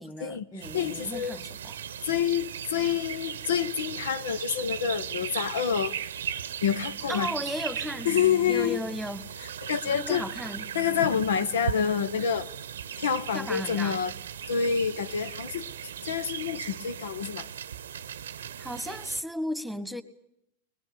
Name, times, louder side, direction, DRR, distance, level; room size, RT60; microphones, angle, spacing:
voice 1, 0.0-1.8 7.1-8.1 8.5-9.2 9.6-10.7 13.3-14.0 18.6-20.0, equal, ahead, 1.6 m, -35 dB
sound 1, 0.6-19.2, right 8 dB, 70° right, 0.8 m, -37 dB
voice 2, 0.7-1.4 2.0-5.9 6.6-7.3 8.0-8.8 9.6-10.2 10.7-12.5 13.0-14.1 14.5-15.7 16.0-17.5, left 7 dB, 70° left, 0.9 m, -27 dB
21.5 x 21.5 x 8.6 m
figure-of-eight pair, 95°, 0 cm